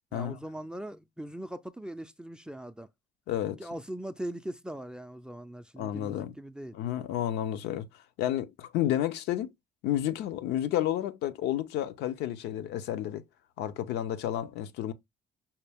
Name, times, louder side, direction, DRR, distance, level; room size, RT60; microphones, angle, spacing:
voice 1, 0.1-2.9 3.6-6.8, right 1 dB, 5° right, 0.4 m, -40 dB
voice 2, 3.3-3.6 5.8-6.3 6.7-7.9 8.2-9.5 9.8-13.2 13.6-14.9, left 12 dB, 85° left, 0.6 m, -31 dB
5.7 x 2.3 x 3.4 m
cardioid pair, 110°, 17 cm